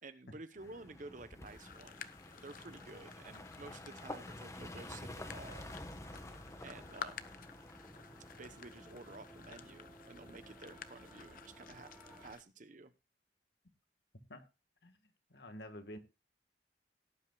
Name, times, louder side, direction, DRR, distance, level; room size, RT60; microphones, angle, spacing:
voice 1, 0.0-2.1 2.4-5.7 6.6-7.3 8.4-11.9 12.2-12.9, right 3 dB, 45° right, 1.0 m, -52 dB
sound 1, 0.6-12.4, left 1 dB, 15° left, 1.2 m, -51 dB
sound 2, 1.4-12.4, left 6 dB, 50° left, 0.8 m, -52 dB
sound 3, 5.0-12.3, right 1 dB, 5° right, 4.3 m, -61 dB
voice 2, 15.3-16.0, equal, 70° left, 1.6 m, -49 dB
17.5 x 11.0 x 2.3 m
head